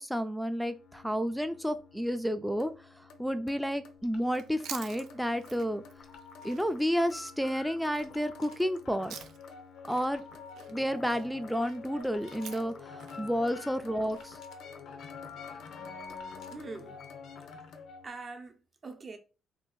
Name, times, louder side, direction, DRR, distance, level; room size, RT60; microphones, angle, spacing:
voice 1, 0.0-2.7 3.0-5.8 6.4-9.2 9.8-10.2 10.7-14.4, equal, ahead, 0.4 m, -31 dB
sound 1, 0.7-18.1, left 5 dB, 75° left, 0.6 m, -48 dB
Chewing mastication, 4.3-9.6 9.9-14.3, right 8 dB, 80° right, 0.4 m, -49 dB
voice 2, 16.5-17.0 18.0-19.2, right 3 dB, 35° right, 0.7 m, -44 dB
2.7 x 2.4 x 3.7 m
cardioid pair, 90°, 0 cm